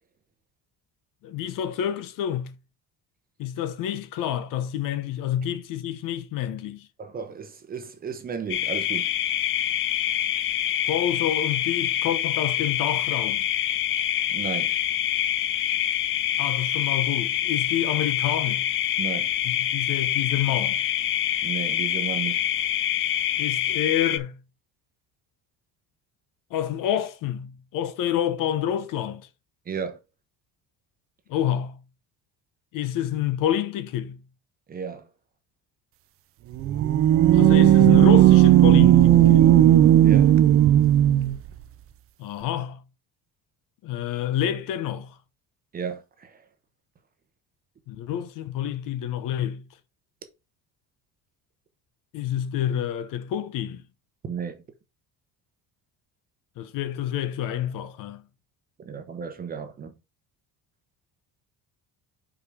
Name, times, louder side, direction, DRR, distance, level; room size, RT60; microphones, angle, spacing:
voice 1, 1.2-2.5 3.4-6.9 10.9-13.5 16.4-18.7 19.4-20.8 23.4-24.4 26.5-29.3 31.3-31.8 32.7-34.2 37.3-39.5 42.2-42.8 43.8-45.2 47.9-49.6 52.1-53.8 56.6-58.3, left 10 dB, 60° left, 0.9 m, -28 dB
voice 2, 7.0-9.1 14.3-14.8 19.0-19.3 21.4-22.5 29.7-30.0 34.7-35.1 40.0-40.3 45.7-46.4 54.2-54.6 58.8-59.9, right 6 dB, 25° right, 0.8 m, -34 dB
sound 1, 8.5-24.2, left 11 dB, 35° left, 0.4 m, -26 dB
sound 2, 36.5-41.4, right 12 dB, 40° right, 0.4 m, -15 dB
5.4 x 4.9 x 4.8 m
cardioid pair, 175°, 37 cm